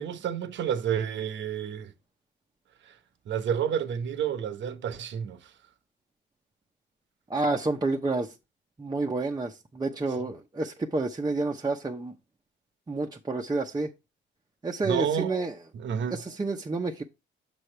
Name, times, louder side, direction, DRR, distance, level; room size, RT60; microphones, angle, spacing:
voice 1, 0.0-1.9 2.9-3.0 3.3-5.5 14.8-15.3 15.7-16.2, right 8 dB, 65° right, 1.0 m, -30 dB
voice 2, 7.3-8.3 8.8-12.1 12.9-13.9 14.6-15.5 16.1-17.0, right 3 dB, 20° right, 0.8 m, -29 dB
6.9 x 6.5 x 3.3 m
cardioid pair, 90°, 20 cm